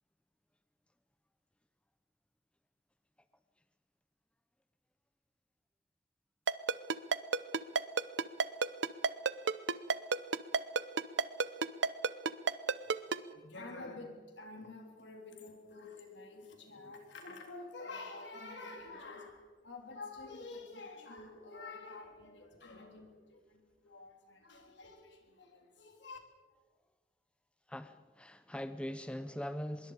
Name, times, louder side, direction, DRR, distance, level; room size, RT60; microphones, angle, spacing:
Ringtone, 6.5-13.2, right 4 dB, 75° right, 0.7 m, -29 dB
voice 1, 13.0-26.2, left 3 dB, 70° left, 3.4 m, -49 dB
voice 2, 27.7-29.9, equal, 5° left, 0.6 m, -41 dB
25.0 x 22.0 x 5.0 m
head